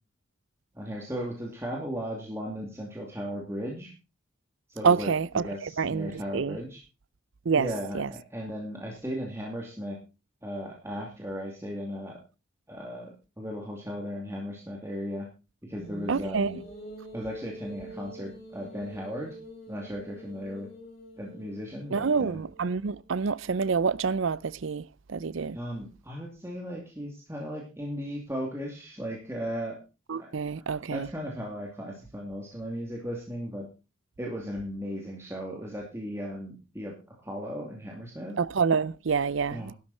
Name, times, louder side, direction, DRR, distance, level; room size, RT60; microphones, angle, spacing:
voice 1, 0.7-3.9 4.7-6.8 7.6-10.0 10.4-12.2 12.7-13.1 13.4-15.3 15.6-16.6 17.1-19.3 19.7-20.7 21.2-22.4 25.5-29.8 30.2-30.3 30.9-33.7 34.2-38.4 39.5-39.7, equal, 15° right, 2.7 m, -36 dB
voice 2, 4.8-6.6 7.5-7.7 7.9-8.1 16.1-16.5 21.9-25.6 30.1-31.1 38.4-39.7, right 5 dB, 70° right, 0.5 m, -27 dB
sound 1, 15.8-23.2, right 1 dB, 35° left, 6.3 m, -45 dB
13.0 x 12.0 x 4.3 m
head